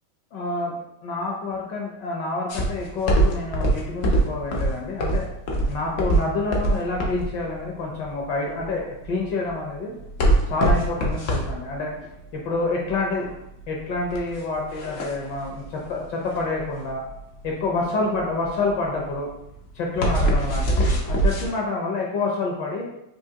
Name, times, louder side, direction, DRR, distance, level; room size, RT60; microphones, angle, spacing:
voice 1, 0.3-0.8 1.0-5.3 5.7-10.0 10.5-11.9 12.3-13.3 13.7-17.0 17.4-19.3 19.7-22.9, left 3 dB, 70° left, -1 dB, 1.2 m, -28 dB
sound 1, 2.5-21.5, right 1 dB, 85° left, 0.6 m, -24 dB
4.7 x 2.7 x 2.8 m, 0.85 s
omnidirectional pair, 2.3 m